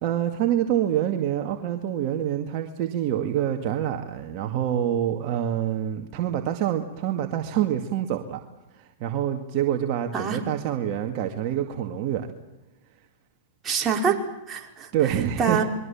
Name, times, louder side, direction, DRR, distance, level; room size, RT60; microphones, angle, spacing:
voice 1, 0.0-8.4 8.7-12.3 14.9-15.6, right 11 dB, 50° right, 4 dB, 2.1 m, -26 dB
voice 2, 13.6-15.6, right 6 dB, 25° right, 1 dB, 4.9 m, -26 dB
29.0 x 22.5 x 7.3 m, 0.99 s
hypercardioid pair, 120°, 0 cm